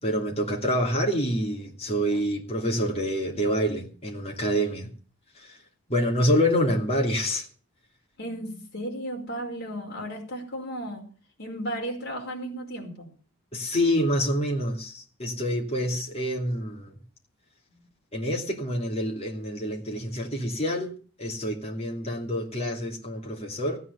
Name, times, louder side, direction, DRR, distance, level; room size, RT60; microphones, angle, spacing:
voice 1, 0.0-4.9 5.4-5.5 5.9-7.5 13.5-16.9 18.1-20.9 21.2-23.8, equal, 30° left, 0 dB, 2.9 m, -27 dB
voice 2, 8.2-11.1 11.4-13.1, right 1 dB, 50° left, 0 dB, 5.1 m, -34 dB
16.0 x 9.7 x 7.0 m, 0.40 s
head